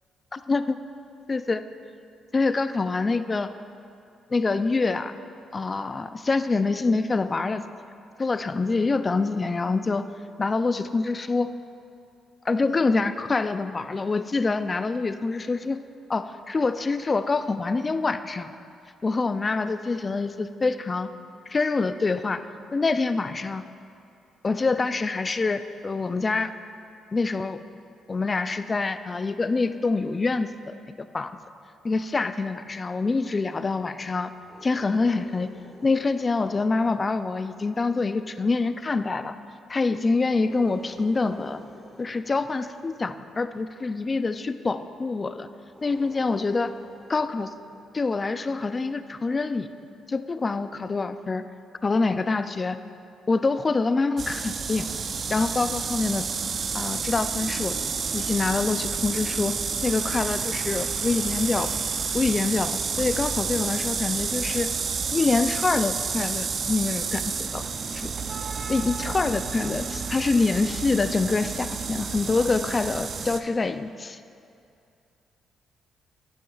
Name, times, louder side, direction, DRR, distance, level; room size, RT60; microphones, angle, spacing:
voice 1, 0.3-0.6 1.3-1.6 2.3-3.5 4.3-5.1 5.5-7.7 8.2-10.1 10.4-11.5 12.5-15.8 16.1-18.5 19.0-21.1 21.5-22.4 22.7-23.6 24.4-26.5 27.1-27.6 28.1-31.3 31.8-34.3 34.6-35.5 35.8-39.4 39.7-41.6 42.0-45.5 45.8-46.7 47.1-47.5 47.9-49.7 50.1-51.4 51.8-52.8 53.3-54.9 55.3-56.3 56.7-57.8 58.1-59.6 59.8-61.7 62.1-64.7 65.1-67.6 67.9-68.1 68.7-74.2, left 3 dB, 30° left, 11 dB, 0.3 m, -25 dB
sound 1, 34.4-37.9 40.3-43.4 45.6-48.4, equal, 5° left, 1.5 m, -50 dB
sound 2, 54.2-73.4, right 5 dB, 50° right, 0.4 m, -30 dB
10.5 x 9.0 x 2.4 m, 2.5 s
cardioid pair, 90°, 0 cm